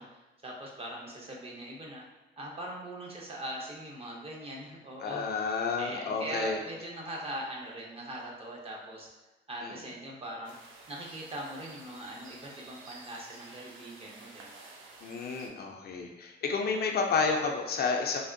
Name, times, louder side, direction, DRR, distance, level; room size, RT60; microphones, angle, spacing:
voice 1, 0.0-2.0 2.4-5.2 5.7-9.1 9.5-10.5 10.9-14.6, right 1 dB, 30° right, -3 dB, 0.7 m, -41 dB
voice 2, 5.0-6.6 9.6-9.7 15.0-18.2, left 4 dB, 55° left, 2 dB, 0.4 m, -30 dB
sound 1, 10.4-15.5, right 3 dB, 85° right, 0.5 m, -51 dB
3.4 x 2.1 x 2.5 m, 1.2 s
cardioid pair, 90°, 20 cm